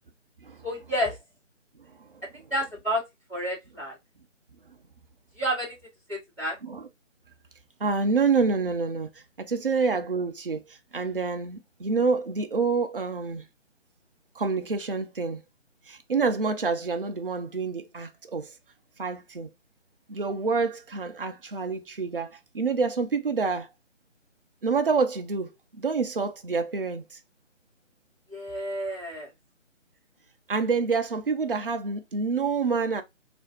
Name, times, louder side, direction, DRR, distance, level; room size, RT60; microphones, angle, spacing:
voice 1, 0.6-1.2 2.5-3.0 3.3-3.9 5.4-5.7 6.1-6.5 28.3-29.3, equal, 5° right, 1.9 m, -30 dB
voice 2, 7.8-9.1 9.4-10.6 10.9-13.5 14.4-15.4 15.9-18.5 19.0-19.5 20.1-23.7 24.6-27.2 28.9-29.0 30.5-33.0, right 4 dB, 45° right, 0.4 m, -27 dB
3.0 x 2.5 x 2.8 m
figure-of-eight pair, 155°, 39 cm